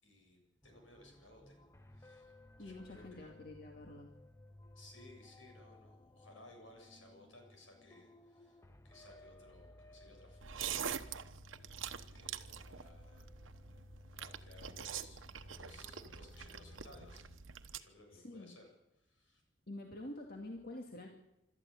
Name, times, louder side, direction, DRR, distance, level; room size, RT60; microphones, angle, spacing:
voice 1, 0.0-1.6 1.9-2.3 2.6-3.3 4.7-11.0 12.1-13.2 14.1-15.2 15.6-17.2 17.7-19.4, left 2 dB, 80° left, 2 dB, 7.6 m, -60 dB
sound 1, 0.6-17.4, left 1 dB, 15° left, 1.0 m, -59 dB
voice 2, 2.6-4.1 18.1-18.5 19.7-21.1, left 1 dB, 50° left, 1 dB, 2.3 m, -47 dB
sound 2, 10.4-17.8, right 8 dB, 85° right, 1.1 m, -45 dB
26.0 x 13.0 x 8.6 m, 0.90 s
head